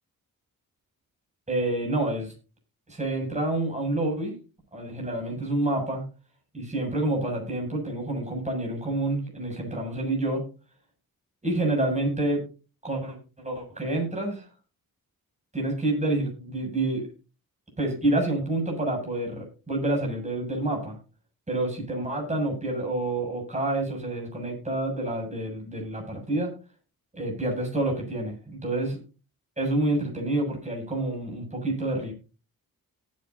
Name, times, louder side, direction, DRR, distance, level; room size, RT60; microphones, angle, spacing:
voice 1, 1.5-2.3 2.9-4.3 4.7-6.0 6.5-10.4 11.4-12.4 12.8-13.2 13.4-14.5 15.5-17.1 17.8-21.0 21.5-26.5 27.1-29.0 29.6-32.1, right 2 dB, 20° right, 1 dB, 7.6 m, -28 dB
18.0 x 9.0 x 2.8 m, 0.34 s
cardioid pair, 95°, 35 cm